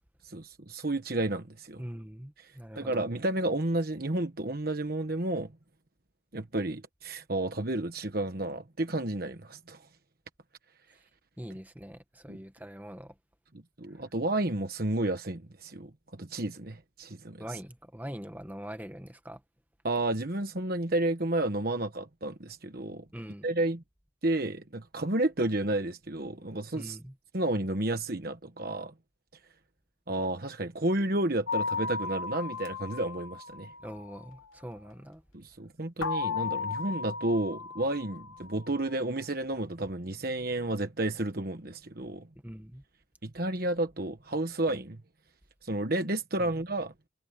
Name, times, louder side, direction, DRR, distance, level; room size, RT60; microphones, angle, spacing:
voice 1, 0.2-1.8 2.4-5.5 6.3-9.9 12.3-12.4 13.8-17.4 19.8-23.1 23.4-23.8 24.2-27.0 27.3-28.9 30.1-33.7 35.3-42.3 43.2-45.0 45.6-46.9, right 1 dB, 50° right, 1.3 m, -31 dB
voice 2, 1.8-3.0 11.4-13.1 17.4-19.4 23.1-23.4 26.7-27.1 33.8-35.2 42.4-42.8 46.4-46.5, equal, 10° right, 1.7 m, -43 dB
sound 1, 31.5-34.3 36.0-38.8, left 5 dB, 85° left, 1.1 m, -35 dB
head